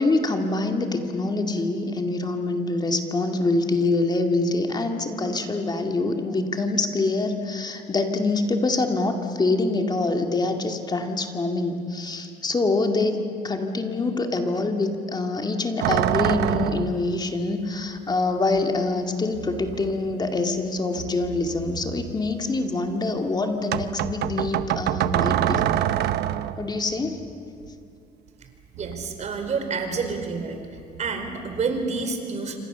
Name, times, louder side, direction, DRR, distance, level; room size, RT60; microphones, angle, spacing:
voice 1, 0.0-25.6 26.6-27.2, left 2 dB, 25° left, 4 dB, 2.3 m, -25 dB
sound 1, 15.8-17.1 18.6-18.7 19.3-20.6 20.9-22.4 23.7-26.7 28.8-29.7 29.9-30.4 30.8-31.9, right 12 dB, 75° right, 0.9 m, -27 dB
voice 2, 28.8-32.6, right 4 dB, 45° right, 6 dB, 4.3 m, -29 dB
27.5 x 25.5 x 7.0 m, 2.6 s
cardioid pair, 110°, 17 cm